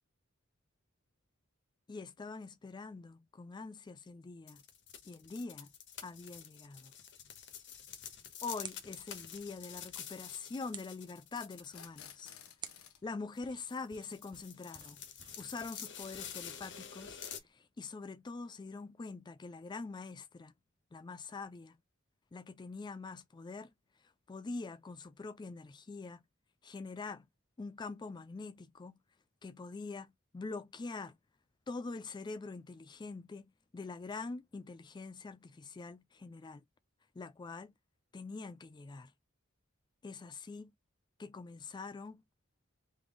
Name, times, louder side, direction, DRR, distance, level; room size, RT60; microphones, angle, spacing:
voice 1, 1.9-4.6 5.0-5.7 6.0-6.9 8.4-12.3 13.0-15.0 15.4-20.5 20.9-21.8 22.3-26.2 26.6-27.3 27.6-29.0 29.4-31.2 31.7-36.6 37.1-37.7 38.1-39.1 40.0-40.7 41.2-42.2, left 3 dB, 20° left, 0.3 m, -44 dB
sound 1, 4.5-12.0 12.3-12.5 13.4-13.5 13.7-17.4, left 8 dB, 60° left, 1.0 m, -48 dB
sound 2, 7.4-7.5 8.9-9.0 11.6-13.0, left 8 dB, 90° left, 0.9 m, -53 dB
sound 3, 7.5-17.5, right 7 dB, 20° right, 0.6 m, -56 dB
3.5 x 3.0 x 3.8 m
head